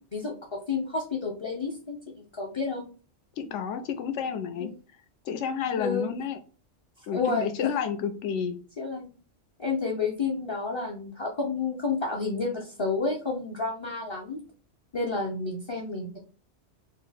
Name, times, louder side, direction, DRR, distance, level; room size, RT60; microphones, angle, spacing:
voice 1, 0.0-2.9 4.6-4.7 5.8-6.1 7.1-7.7 8.8-9.1 9.6-14.4 14.9-16.2, left 4 dB, 35° left, -2 dB, 0.5 m, -30 dB
voice 2, 3.4-4.7 5.2-6.4 7.1-8.6, left 7 dB, 85° left, 7 dB, 0.9 m, -30 dB
4.4 x 2.1 x 3.3 m, 0.37 s
omnidirectional pair, 1.2 m